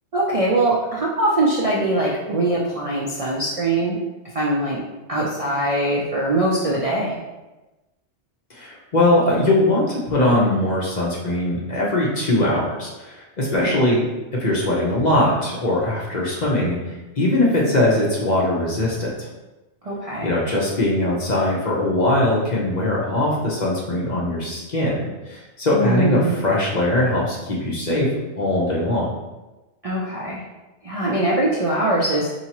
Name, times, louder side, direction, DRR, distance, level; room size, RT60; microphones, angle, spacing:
voice 1, 0.1-4.0 4.2-4.8 5.1-7.2 13.6-13.7 19.8-20.4 25.7-26.4 29.8-30.4 30.8-32.3, right 1 dB, 45° right, -4 dB, 0.4 m, -22 dB
voice 2, 8.5-14.1 14.4-19.3 20.2-28.1 28.4-29.1, left 1 dB, 40° left, -4 dB, 0.8 m, -21 dB
4.5 x 2.9 x 2.9 m, 1.1 s
omnidirectional pair, 1.2 m